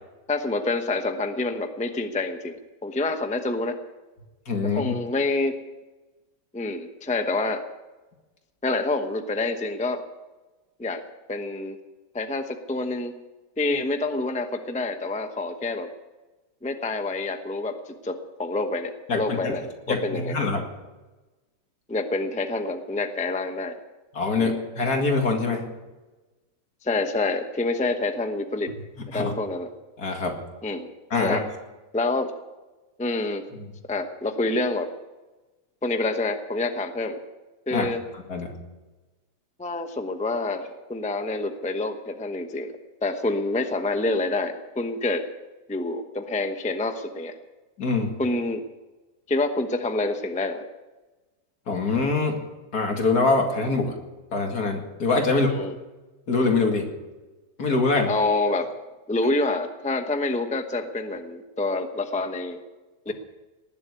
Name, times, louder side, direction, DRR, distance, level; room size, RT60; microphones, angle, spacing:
voice 1, 0.3-3.8 4.7-5.5 6.5-7.6 8.6-10.0 10.8-11.0 11.3-11.8 12.1-13.1 13.6-15.9 16.6-20.3 21.9-23.7 24.4-24.5 26.8-28.7 29.0-29.7 30.6-30.9 31.2-31.4 31.9-32.3 33.0-33.4 33.9-34.9 35.8-37.2 37.7-38.0 39.6-42.7 43.0-45.2 45.7-47.3 48.2-48.6 49.3-50.7 55.3-55.7 58.1-58.7 59.1-62.6 63.1-63.2, left 2 dB, 5° left, 7 dB, 0.7 m, -27 dB
voice 2, 4.5-4.9 19.1-19.6 19.9-20.7 24.1-25.7 29.0-29.3 30.0-30.4 31.1-31.4 33.5-33.7 37.7-37.9 38.3-38.5 47.8-48.2 51.7-52.4 52.7-54.0 54.3-55.5 56.3-56.9 57.6-58.1, left 3 dB, 65° left, 3 dB, 2.7 m, -24 dB
19.0 x 7.6 x 9.5 m, 1.2 s
omnidirectional pair, 1.8 m